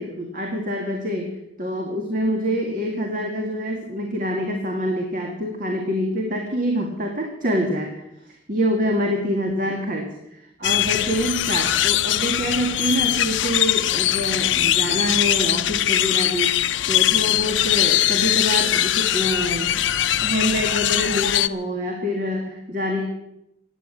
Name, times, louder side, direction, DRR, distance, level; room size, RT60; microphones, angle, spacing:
voice 1, 0.0-1.3 1.6-19.9 20.2-23.1, equal, 45° right, 2 dB, 2.0 m, -26 dB
sound 1, 10.6-21.5, left 13 dB, 85° left, 0.6 m, -21 dB
16.0 x 10.0 x 7.4 m, 0.86 s
head